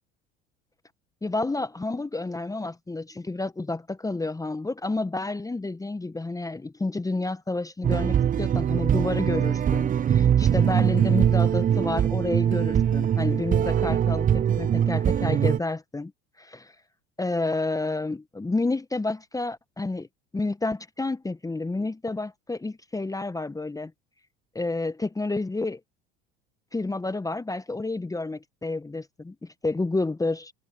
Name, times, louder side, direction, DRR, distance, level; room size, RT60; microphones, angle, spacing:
voice 1, 1.2-16.1 16.4-16.7 17.2-20.1 20.3-23.9 24.5-25.8 26.7-30.5, left 2 dB, 10° left, 1.2 m, -30 dB
sound 1, 7.8-15.6, right 9 dB, 25° right, 0.7 m, -22 dB
hypercardioid pair, 70°, 31 cm